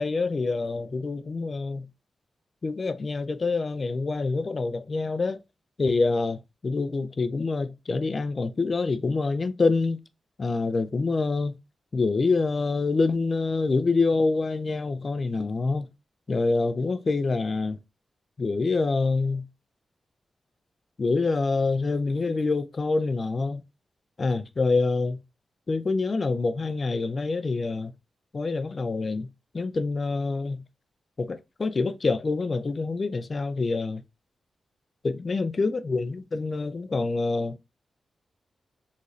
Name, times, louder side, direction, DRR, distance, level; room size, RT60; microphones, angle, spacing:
voice 1, 0.0-1.9 2.6-5.4 5.8-10.0 10.4-11.6 11.9-15.9 16.3-17.8 18.4-19.4 21.0-23.6 24.2-25.2 25.7-27.9 28.3-29.3 29.5-30.6 31.2-34.0 35.0-37.6, left 3 dB, 40° left, 0.4 m, -26 dB
3.9 x 3.0 x 2.4 m
wide cardioid pair, 140°, 0 cm